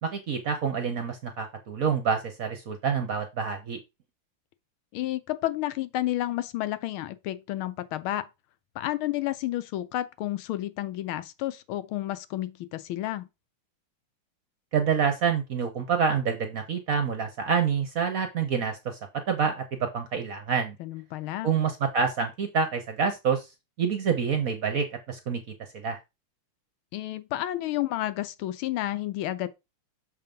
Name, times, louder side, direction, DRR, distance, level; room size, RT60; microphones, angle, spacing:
voice 1, 0.0-3.8 14.7-19.0 19.3-20.8 21.4-23.5 23.8-25.4 25.7-26.0, right 6 dB, 55° right, 1.0 m, -27 dB
voice 2, 4.9-8.3 8.7-13.3 20.8-21.5 26.9-29.5, left 14 dB, 80° left, 1.5 m, -31 dB
6.7 x 3.6 x 5.2 m
omnidirectional pair, 2.3 m